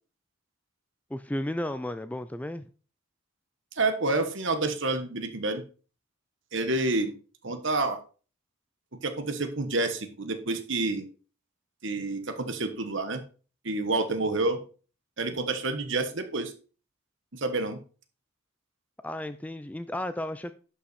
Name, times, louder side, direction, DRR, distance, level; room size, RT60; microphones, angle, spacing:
voice 1, 1.1-2.7 19.0-20.5, left 1 dB, 5° left, 0.3 m, -33 dB
voice 2, 3.8-5.6 6.5-7.1 7.4-8.0 9.0-11.1 11.8-13.2 13.6-14.6 15.2-16.5 17.3-17.8, right 2 dB, 55° right, 1.3 m, -28 dB
11.0 x 5.8 x 4.2 m
head